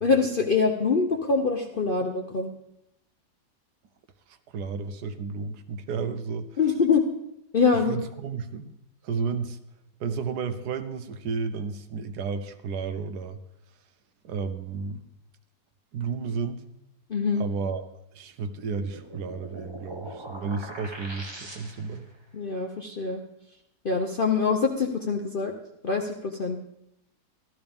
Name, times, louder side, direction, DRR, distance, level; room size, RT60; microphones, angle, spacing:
voice 1, 0.0-2.5 6.6-7.0 7.5-8.0 17.1-17.4 22.3-23.2 23.8-25.5 25.8-26.6, left 5 dB, 50° left, 2 dB, 0.6 m, -24 dB
voice 2, 4.3-6.6 7.9-8.7 9.0-9.6 10.0-13.4 14.2-15.0 15.9-16.6 17.4-17.9 18.1-22.1, right 5 dB, 70° right, 9 dB, 1.2 m, -32 dB
sound 1, 18.5-22.1, right 1 dB, 20° right, 0.8 m, -42 dB
14.0 x 12.5 x 3.5 m, 0.82 s
omnidirectional pair, 1.9 m